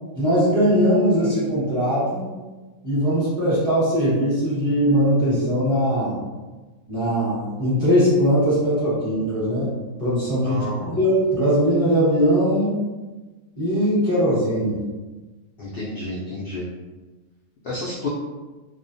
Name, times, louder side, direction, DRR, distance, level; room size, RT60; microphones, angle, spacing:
voice 1, 0.1-2.3 2.8-6.2 6.9-9.7 10.0-12.8 13.6-14.8, equal, 25° right, -11 dB, 0.9 m, -20 dB
voice 2, 10.4-11.0 15.6-16.6 17.6-18.1, left 2 dB, 70° left, -7 dB, 0.5 m, -31 dB
2.4 x 2.1 x 2.5 m, 1.2 s
omnidirectional pair, 1.5 m